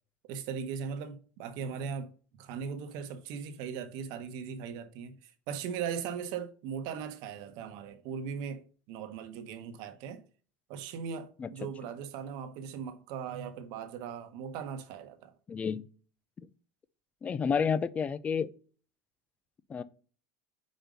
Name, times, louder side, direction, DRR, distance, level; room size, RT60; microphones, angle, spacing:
voice 1, 0.3-2.1 2.4-8.6 8.9-10.2 10.7-15.3, right 7 dB, 55° right, 1.0 m, -39 dB
voice 2, 15.5-15.8 16.4-16.5 17.2-18.5 19.7-19.8, left 6 dB, 15° left, 0.3 m, -30 dB
5.2 x 4.4 x 5.2 m
supercardioid pair, 150°, 8 cm